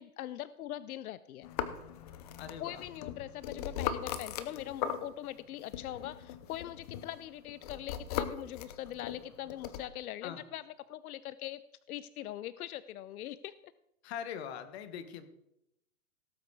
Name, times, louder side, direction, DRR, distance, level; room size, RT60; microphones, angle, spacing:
voice 1, 0.0-1.5 2.6-10.6 10.9-11.6 11.9-13.5, left 13 dB, 85° left, 16 dB, 0.6 m, -42 dB
sound 1, 1.4-5.4 5.7-9.8, left 9 dB, 25° left, 0.7 m, -39 dB
voice 2, 2.4-2.8 10.2-10.4 14.0-15.3, left 8 dB, 45° left, 10 dB, 1.5 m, -42 dB
17.5 x 8.2 x 4.8 m, 0.84 s
supercardioid pair, 165°, 43 cm